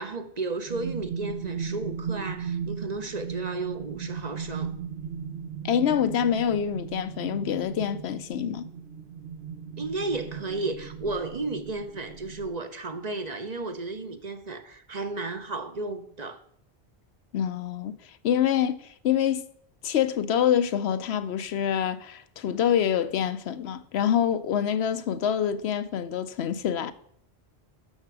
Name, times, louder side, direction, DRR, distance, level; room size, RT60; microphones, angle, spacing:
voice 1, 0.0-4.7 9.8-16.4, right 3 dB, 45° right, 0.8 m, -33 dB
sound 1, 0.7-12.5, right 7 dB, 70° right, 1.0 m, -37 dB
voice 2, 5.6-8.7 17.3-19.5 19.8-26.9, left 9 dB, 80° left, 0.9 m, -26 dB
12.0 x 5.9 x 4.7 m
omnidirectional pair, 1.1 m